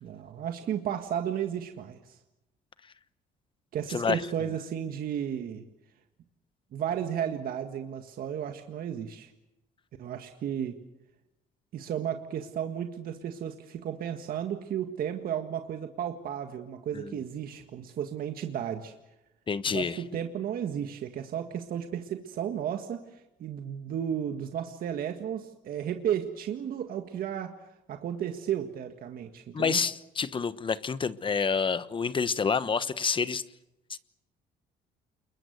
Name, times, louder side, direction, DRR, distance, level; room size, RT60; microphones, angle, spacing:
voice 1, 0.0-2.2 3.7-5.6 6.7-9.3 10.0-10.8 11.7-18.9 19.7-27.5 27.9-29.8, right 9 dB, 60° right, 1.8 m, -33 dB
voice 2, 3.9-4.2 16.9-17.2 19.5-20.0 29.5-33.4 33.9-34.0, left 5 dB, 30° left, 1.1 m, -28 dB
28.5 x 22.0 x 8.0 m
cardioid pair, 110°, 17 cm